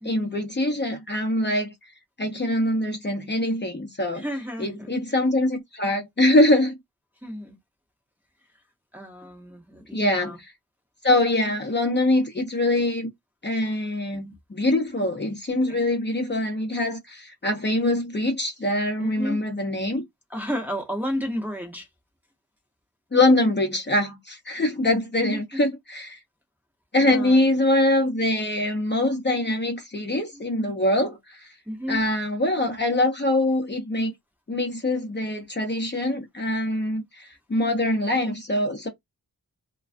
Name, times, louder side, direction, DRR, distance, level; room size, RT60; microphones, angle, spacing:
voice 1, 0.0-1.7 2.2-4.2 4.6-6.8 9.9-10.5 11.0-13.1 13.4-20.0 23.1-26.2 26.9-31.5 31.9-34.1 34.5-38.9, left 1 dB, 30° left, 0.8 m, -23 dB
voice 2, 4.1-4.9 7.2-7.6 8.9-10.4 14.1-14.2 15.7-15.8 19.0-19.4 20.3-21.9 25.3-25.4 27.1-27.4 30.3-30.5 31.7-32.0, equal, 5° right, 0.8 m, -32 dB
2.3 x 2.2 x 2.5 m
wide cardioid pair, 80°, 38 cm